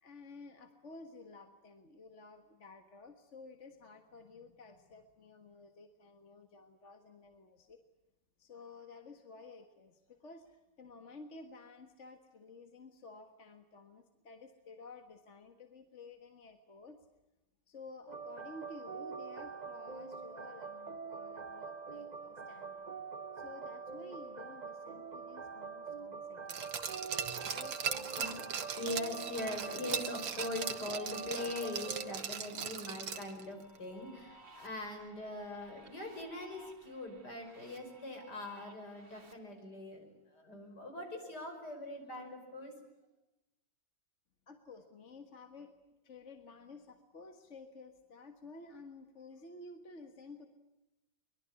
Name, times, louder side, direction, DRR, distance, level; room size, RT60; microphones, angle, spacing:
voice 1, 0.0-7.8 8.4-17.1 17.7-23.0 23.4-26.8 27.4-28.4 44.5-45.7 46.0-50.5, left 3 dB, 40° left, 7 dB, 1.8 m, -53 dB
sound 1, 18.1-32.1, right 5 dB, 30° right, 0.8 m, -45 dB
Glass, 26.5-33.4 33.8-33.9, right 7 dB, 75° right, 2.1 m, -39 dB
voice 2, 28.7-42.7, left 2 dB, 55° left, 4 dB, 6.0 m, -42 dB
sound 2, 33.1-39.3, right 2 dB, 50° right, 2.9 m, -59 dB
23.5 x 22.0 x 9.8 m, 0.97 s
omnidirectional pair, 2.1 m